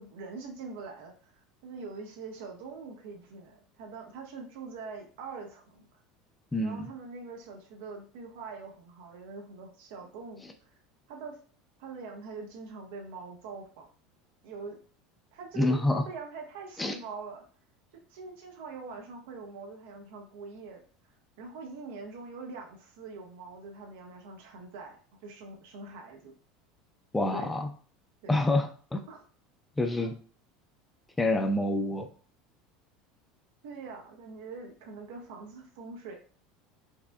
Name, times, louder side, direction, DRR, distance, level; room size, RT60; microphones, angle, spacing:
voice 1, 0.0-5.9 6.6-10.7 11.1-11.4 11.8-13.9 14.4-14.8 15.3-17.4 17.9-20.8 21.4-26.3 27.3-27.5 28.2-28.4 29.1-29.2 30.0-30.1 33.6-36.1, right 4 dB, 70° right, 2 dB, 0.9 m, -43 dB
voice 2, 6.5-6.9 15.6-16.0 16.8-17.0 27.1-27.7 28.3-29.0 29.8-30.1 31.2-32.1, left 2 dB, 15° left, 6 dB, 0.6 m, -27 dB
4.8 x 3.4 x 2.2 m, 0.41 s
hypercardioid pair, 80°, 0 cm